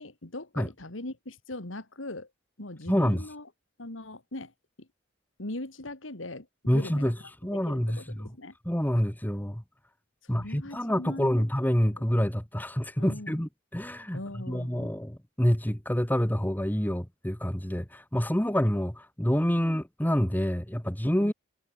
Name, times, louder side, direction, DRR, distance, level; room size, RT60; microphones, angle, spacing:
voice 1, 0.0-2.3 2.6-3.5 3.8-4.9 5.4-8.5 10.2-12.0 13.0-13.4 14.1-14.9 19.5-19.6 21.2-21.3, left 2 dB, 80° left, 2.7 m, -41 dB
voice 2, 2.9-3.2 6.7-7.1 7.4-8.3 8.6-9.6 10.3-14.2 14.5-21.3, equal, 10° left, 1.6 m, -27 dB
head